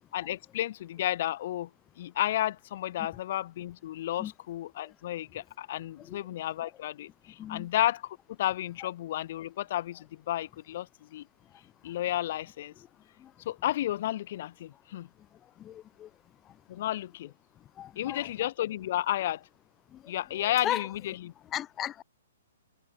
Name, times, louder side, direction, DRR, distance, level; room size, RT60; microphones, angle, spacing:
voice 1, 0.1-1.7 2.0-11.2 11.8-12.7 13.5-15.1 16.7-17.3 18.0-19.5 20.1-21.3, left 13 dB, 50° left, 1.9 m, -32 dB
voice 2, 7.4-7.7 11.8-12.0 13.2-13.3 15.4-16.1 16.4-16.6 17.7-18.3 19.9-20.9 21.5-22.0, left 11 dB, 20° left, 0.9 m, -37 dB
figure-of-eight pair, 120°, 0 cm